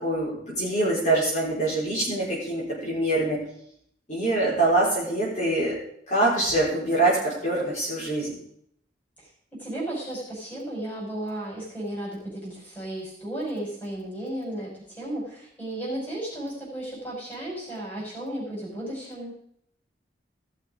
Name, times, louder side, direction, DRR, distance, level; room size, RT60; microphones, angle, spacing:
voice 1, 0.0-3.4 4.1-5.7 6.1-8.3, right 2 dB, 40° left, -6 dB, 4.6 m, -24 dB
voice 2, 9.6-19.3, right 1 dB, 10° left, -5 dB, 5.5 m, -34 dB
16.0 x 6.7 x 5.1 m, 0.69 s
head